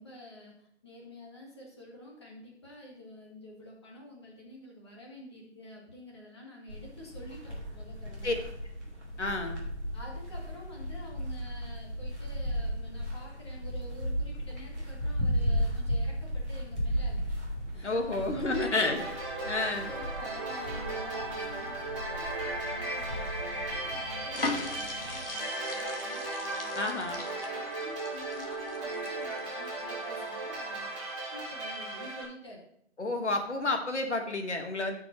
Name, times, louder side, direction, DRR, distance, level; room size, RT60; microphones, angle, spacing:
voice 1, 0.0-8.5 9.9-17.4 17.7-19.1 19.4-27.1 27.4-32.7, left 1 dB, 25° left, -3 dB, 1.9 m, -49 dB
sound 1, 6.7-25.2, equal, ahead, 2.2 m, -35 dB
voice 2, 9.2-9.6 17.8-19.0 19.5-19.9 26.7-27.2 33.0-34.9, left 2 dB, 75° left, 4 dB, 1.9 m, -30 dB
sound 2, 18.5-32.2, right 2 dB, 25° right, 4.0 m, -36 dB
sound 3, 24.3-29.7 30.1-30.3, left 2 dB, 55° left, 1.8 m, -39 dB
14.5 x 5.9 x 3.2 m, 0.72 s
figure-of-eight pair, 170°, 35 cm